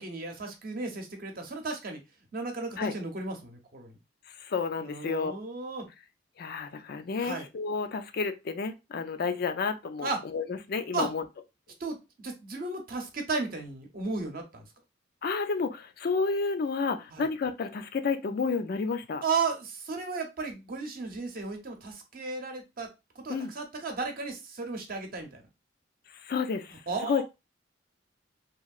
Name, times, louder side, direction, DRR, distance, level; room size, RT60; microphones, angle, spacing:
voice 1, 0.0-2.0 2.3-3.9 4.8-5.9 7.2-7.5 10.0-10.2 10.9-11.1 11.8-14.6 17.1-17.3 19.2-22.9 23.2-25.4 26.9-27.2, right 4 dB, 50° right, 0.8 m, -34 dB
voice 2, 4.4-5.3 6.4-11.2 15.2-19.2 23.3-23.5 26.2-26.8 27.1-27.2, left 4 dB, 55° left, 0.4 m, -30 dB
3.0 x 2.7 x 2.3 m
head